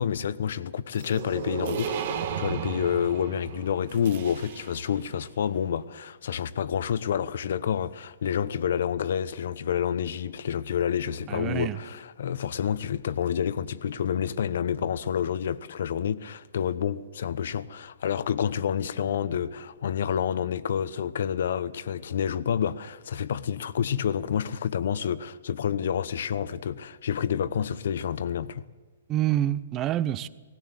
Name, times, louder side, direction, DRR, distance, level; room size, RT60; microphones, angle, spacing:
voice 1, 0.0-28.6, left 8 dB, 65° left, 0.9 m, -29 dB
sound 1, 1.0-5.0, right 7 dB, 60° right, 1.9 m, -34 dB
voice 2, 11.3-11.8 29.1-30.3, right 12 dB, 25° right, 0.7 m, -27 dB
18.5 x 18.0 x 8.2 m
hypercardioid pair, 130°, 0 cm